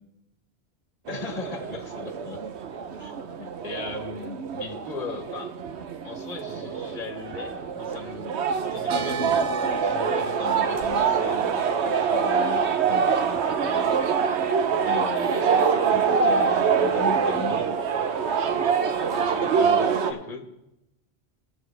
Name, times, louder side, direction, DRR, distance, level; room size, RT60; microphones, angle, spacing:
voice 1, 1.1-2.4 3.0-3.1 3.4-5.5 6.0-8.3 8.7-13.9 14.7-17.8 19.2-20.5, left 4 dB, 40° left, 4 dB, 1.2 m, -38 dB
sound 1, 1.1-20.1, right 6 dB, 90° right, 1.1 m, -25 dB
sound 2, 9.7-19.8, left 1 dB, 35° right, 1.5 m, -42 dB
18.5 x 7.5 x 3.4 m, 0.91 s
omnidirectional pair, 1.1 m